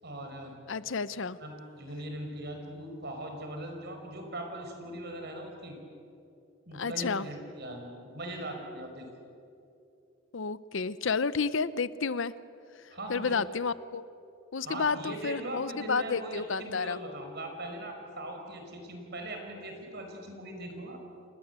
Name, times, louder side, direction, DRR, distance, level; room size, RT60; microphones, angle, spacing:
voice 1, 0.0-0.6 1.4-5.8 6.7-9.1 12.9-13.5 14.6-21.0, right 1 dB, 50° right, 3 dB, 5.1 m, -40 dB
voice 2, 0.7-1.4 6.7-7.3 10.3-12.3 13.1-14.0 14.5-17.0, left 5 dB, 60° left, 16 dB, 0.7 m, -31 dB
29.5 x 21.5 x 8.1 m, 2.7 s
head